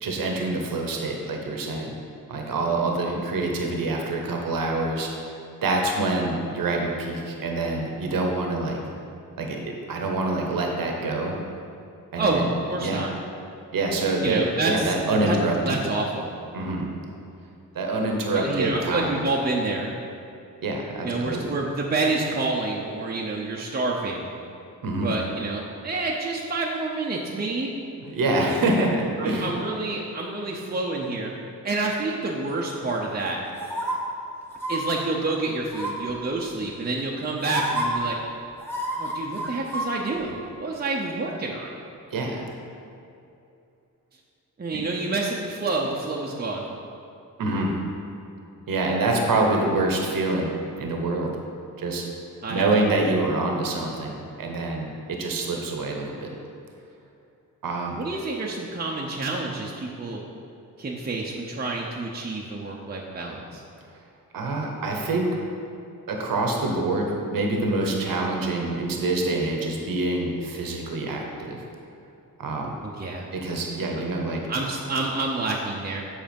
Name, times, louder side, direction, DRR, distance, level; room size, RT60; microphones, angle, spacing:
voice 1, 0.0-1.9 2.3-5.1 5.6-8.8 9.4-9.6 9.9-11.4 12.1-12.5 12.8-13.1 13.7-15.8 16.5-16.9 17.7-19.2 20.6-21.5 24.8-25.1 28.1-29.6 42.1-42.4 47.4-47.8 48.7-50.5 50.8-51.4 51.8-52.1 52.5-56.3 57.6-58.0 64.3-65.3 66.1-71.6 72.4-72.7 73.3-74.4, right 2 dB, 75° right, 1 dB, 1.0 m, -26 dB
voice 2, 12.7-13.1 14.2-14.9 15.2-15.4 15.6-16.3 18.3-19.9 21.0-24.3 25.0-27.7 29.2-31.3 31.6-33.4 34.7-38.2 39.0-41.7 44.6-46.6 52.4-52.7 58.0-60.2 60.8-63.6 72.8-73.3 74.5-76.0, right 3 dB, 30° right, -3 dB, 0.8 m, -28 dB
sound 1, 33.6-33.9 34.5-34.8 35.7-36.1 37.0-37.1 37.4-37.9 38.6-39.9 40.2-40.3, right 1 dB, 5° left, 1.4 m, -29 dB
7.6 x 4.9 x 5.3 m, 2.7 s
cardioid pair, 90°, 34 cm